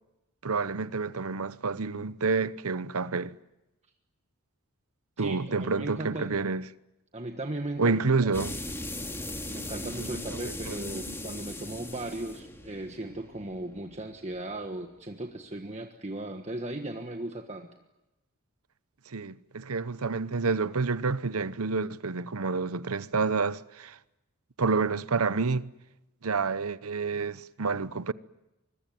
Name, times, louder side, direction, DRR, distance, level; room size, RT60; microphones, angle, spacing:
voice 1, 0.4-3.4 5.2-6.7 7.8-8.6 9.8-10.4 10.7-11.2 19.1-24.0 24.6-25.7 26.2-28.1, right 4 dB, 85° right, 0.9 m, -29 dB
voice 2, 5.2-6.3 7.1-8.0 8.4-8.5 9.5-17.7, right 1 dB, 30° right, 1.5 m, -37 dB
Oidz Drop Dramatic A, 8.3-14.8, left 1 dB, 10° left, 2.4 m, -39 dB
25.0 x 23.0 x 9.4 m
head